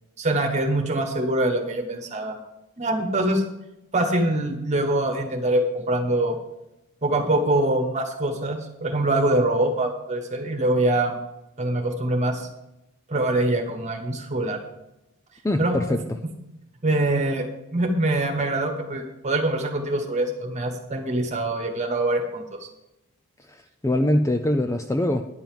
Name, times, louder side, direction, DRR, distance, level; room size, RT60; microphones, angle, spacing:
voice 1, 0.2-2.4 2.8-3.4 3.9-6.4 7.0-11.1 11.6-12.5 13.1-14.6 15.6-15.8 16.8-17.5 17.7-22.7, right 1 dB, 30° right, 4 dB, 1.5 m, -24 dB
voice 2, 15.4-16.0 23.8-25.2, left 1 dB, 15° left, 7 dB, 0.4 m, -22 dB
10.5 x 5.5 x 7.5 m, 0.89 s
head